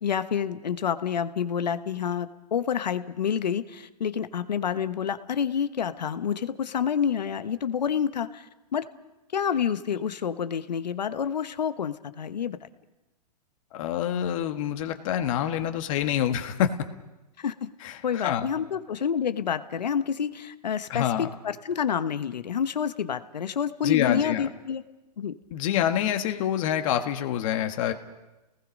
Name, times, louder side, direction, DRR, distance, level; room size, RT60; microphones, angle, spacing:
voice 1, 0.0-8.4 8.7-8.8 9.3-12.6 17.4-17.7 18.0-24.8 25.2-25.3, left 7 dB, 85° left, 11 dB, 1.2 m, -28 dB
voice 2, 13.7-16.7 17.8-18.5 20.9-21.3 23.8-24.5 25.5-27.9, left 10 dB, 50° left, 6 dB, 1.7 m, -26 dB
29.5 x 19.0 x 5.3 m, 1.0 s
hypercardioid pair, 130°, 21 cm